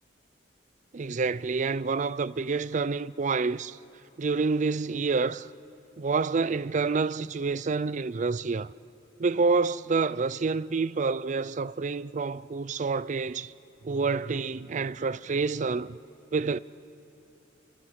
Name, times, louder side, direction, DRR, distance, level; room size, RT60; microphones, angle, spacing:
voice 1, 0.9-3.8 4.2-5.5 6.0-8.7 9.2-13.5 13.8-16.0 16.3-16.6, right 4 dB, 40° right, 0.5 m, -28 dB
29.5 x 25.0 x 6.5 m
head